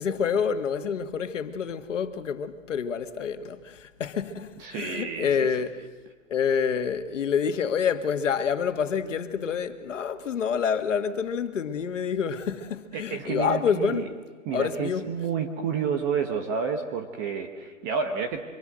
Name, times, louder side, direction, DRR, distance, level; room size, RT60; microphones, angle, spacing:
voice 1, 0.0-5.8 6.3-14.1 14.5-15.1, left 7 dB, 70° left, 2.2 m, -27 dB
voice 2, 4.6-5.5 12.9-14.1 14.4-18.4, right 6 dB, 15° right, 1.1 m, -30 dB
26.0 x 23.0 x 7.8 m
hypercardioid pair, 170°, 39 cm